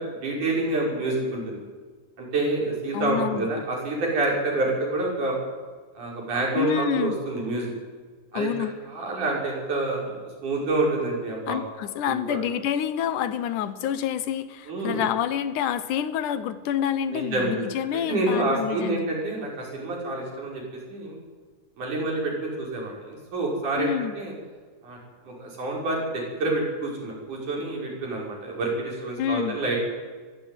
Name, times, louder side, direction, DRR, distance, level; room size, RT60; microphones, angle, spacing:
voice 1, 0.0-1.6 2.2-5.4 6.0-7.7 8.3-8.5 8.9-11.6 12.1-12.4 14.7-15.0 17.1-17.6 18.1-21.2 21.8-24.3 24.8-25.0 25.2-29.8, right 2 dB, 80° right, -1 dB, 7.0 m, -28 dB
voice 2, 2.9-3.5 6.6-7.2 8.3-8.8 11.5-19.1 23.8-24.1 29.2-29.6, left 9 dB, 80° left, 13 dB, 2.6 m, -28 dB
22.5 x 15.0 x 9.3 m, 1.4 s
omnidirectional pair, 3.5 m